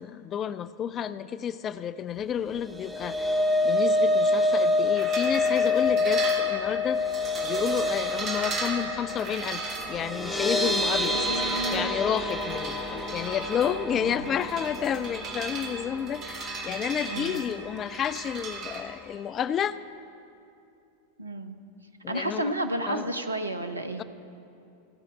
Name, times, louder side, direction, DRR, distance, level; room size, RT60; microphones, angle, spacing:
voice 1, 0.0-11.4 11.7-19.8 22.0-22.5 22.9-23.0 24.0-24.1, left 8 dB, 30° left, 0.3 m, -31 dB
sound 1, 2.6-16.8 17.1-17.4 17.7-17.8, left 2 dB, 5° right, 1.3 m, -27 dB
sound 2, 5.0-18.8, right 3 dB, 30° right, 1.6 m, -37 dB
voice 2, 11.1-11.9 13.9-14.3 17.1-17.4 21.2-21.6 22.1-24.0, right 1 dB, 80° right, 0.7 m, -32 dB
16.0 x 5.6 x 8.4 m
figure-of-eight pair, 90°, 0 cm